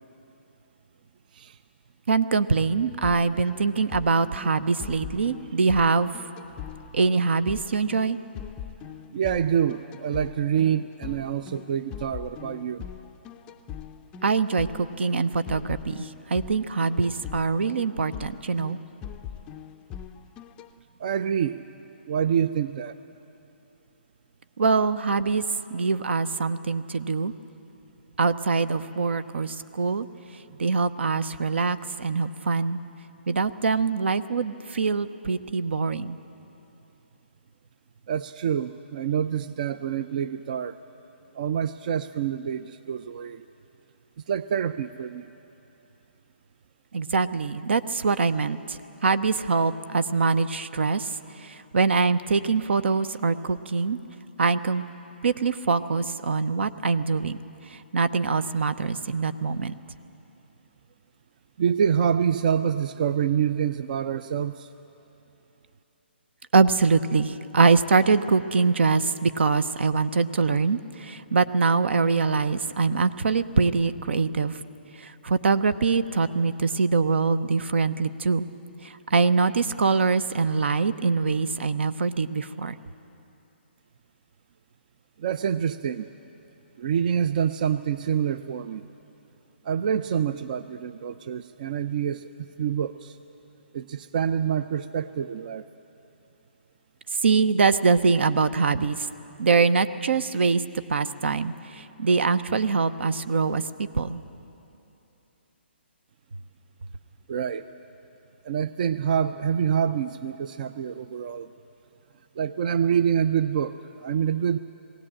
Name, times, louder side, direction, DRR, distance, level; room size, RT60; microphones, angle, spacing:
voice 1, 2.1-6.1 6.9-8.2 14.2-18.8 24.6-25.4 25.7-27.3 28.2-30.1 30.6-32.8 33.3-36.2 46.9-51.1 51.4-54.0 54.4-54.8 55.2-57.4 57.7-59.7 66.5-74.6 75.0-78.5 78.8-82.7 97.2-99.0 99.4-100.6 100.9-104.2, right 4 dB, 70° right, 14 dB, 0.8 m, -23 dB
sound 1, 3.0-20.7, left 9 dB, 15° left, 0.4 m, -41 dB
voice 2, 9.1-12.8 21.0-21.6 22.1-22.9 38.1-40.8 41.3-43.4 44.3-45.3 61.6-64.7 85.2-86.1 86.8-88.9 89.7-92.3 92.6-93.2 93.7-95.6 107.3-107.7 108.4-111.5 112.4-114.6, right 8 dB, 45° right, 13 dB, 0.5 m, -26 dB
20.0 x 17.0 x 8.7 m, 3.0 s
hypercardioid pair, 155°, 6 cm